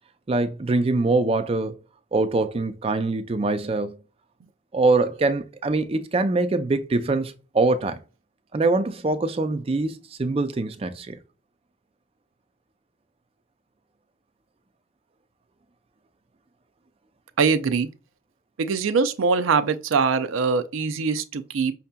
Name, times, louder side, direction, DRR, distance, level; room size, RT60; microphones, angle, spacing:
voice 1, 0.3-1.8 2.1-4.0 4.7-8.0 8.5-11.2, right 3 dB, 30° right, 0.4 m, -23 dB
voice 2, 17.4-17.9 18.6-21.7, right 5 dB, 90° right, 0.4 m, -22 dB
5.7 x 2.7 x 2.2 m
head